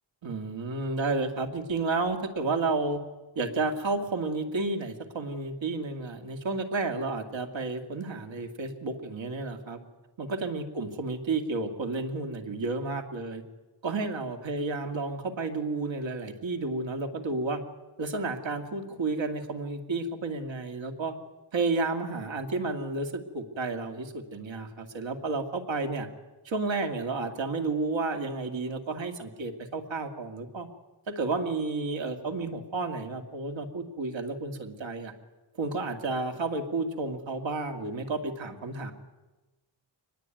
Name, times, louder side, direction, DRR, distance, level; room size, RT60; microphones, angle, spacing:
voice 1, 0.2-3.0 3.4-9.8 10.2-13.4 13.8-17.6 18.0-21.1 21.5-26.1 26.4-30.7 31.1-35.1 35.6-38.9, right 3 dB, 80° right, 5 dB, 2.5 m, -31 dB
24.0 x 20.5 x 9.2 m, 1.2 s
wide cardioid pair, 125°, 45 cm